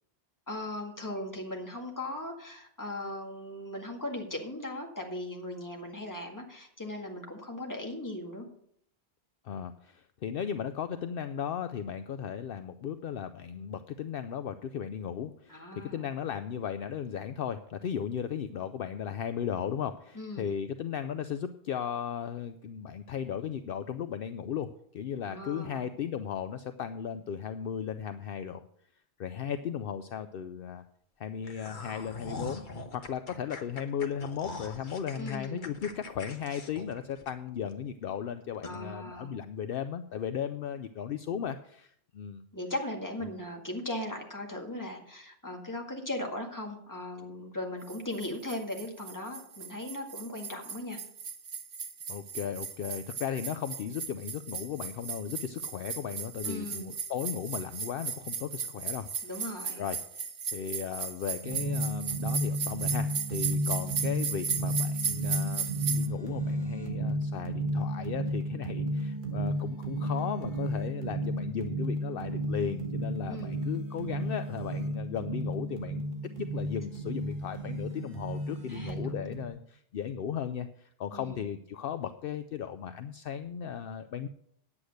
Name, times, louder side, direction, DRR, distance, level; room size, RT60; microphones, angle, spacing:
voice 1, 0.5-8.5 15.5-16.0 20.1-20.5 25.2-25.8 35.2-35.7 38.6-39.3 42.5-51.0 56.4-56.9 59.2-59.8 73.3-73.6 78.7-79.2 81.1-81.4, left 1 dB, 20° left, 1 dB, 1.9 m, -38 dB
voice 2, 9.4-28.7 29.2-30.8 31.2-32.7 32.9-42.4 52.1-59.1 59.8-60.3 60.5-76.0 76.4-84.3, left 8 dB, 65° left, 10 dB, 0.7 m, -36 dB
sound 1, 31.4-37.7 38.1-38.2 38.6-38.8, left 2 dB, 50° left, 1.3 m, -43 dB
sound 2, 47.9-66.1, right 6 dB, 85° right, 1.3 m, -36 dB
sound 3, 61.4-79.5, right 1 dB, 50° right, 1.5 m, -33 dB
9.8 x 8.5 x 6.4 m, 0.69 s
omnidirectional pair, 1.1 m